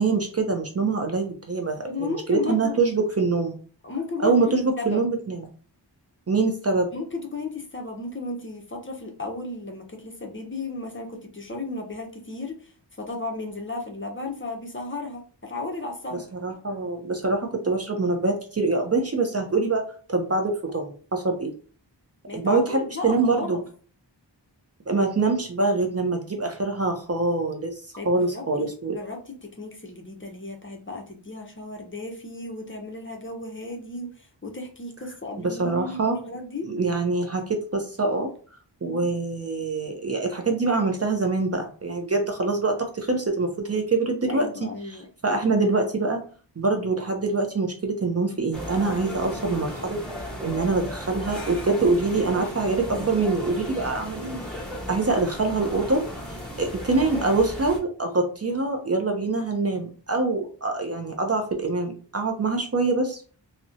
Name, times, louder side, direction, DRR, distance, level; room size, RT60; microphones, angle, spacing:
voice 1, 0.0-3.6 4.2-5.4 6.3-6.9 16.3-19.8 20.1-21.5 22.3-23.6 24.9-27.8 28.1-28.9 35.4-36.2 36.7-38.3 38.8-44.5 44.9-46.2 46.6-50.0 50.4-54.3 54.9-63.4, right 3 dB, 35° right, 3 dB, 0.4 m, -24 dB
voice 2, 1.9-2.8 3.8-4.5 4.8-5.0 6.9-16.2 22.3-23.6 28.0-36.7 38.9-39.1 44.3-45.1 54.1-54.5, left 3 dB, 30° left, 2 dB, 0.5 m, -34 dB
sound 1, 48.5-57.8, equal, ahead, 1.0 m, -35 dB
2.5 x 2.1 x 2.5 m, 0.41 s
wide cardioid pair, 40°, 44 cm